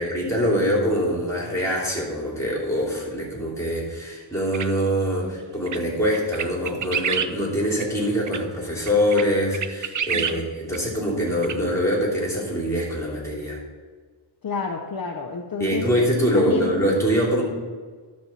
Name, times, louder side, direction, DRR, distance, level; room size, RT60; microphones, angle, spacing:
voice 1, 0.0-13.6 15.6-17.4, equal, 5° left, -3 dB, 2.9 m, -24 dB
sound 1, 4.5-4.7 5.7-5.8 6.1-7.3 7.8-7.9 8.3-8.4 8.9-9.2 9.5-10.4 10.7-10.8 11.4-11.6, right 7 dB, 40° right, 0.5 m, -27 dB
voice 2, 10.1-10.4 14.4-15.9 16.3-16.8, left 5 dB, 50° left, 2 dB, 0.8 m, -29 dB
11.0 x 4.3 x 7.2 m, 1.5 s
wide cardioid pair, 120°, 46 cm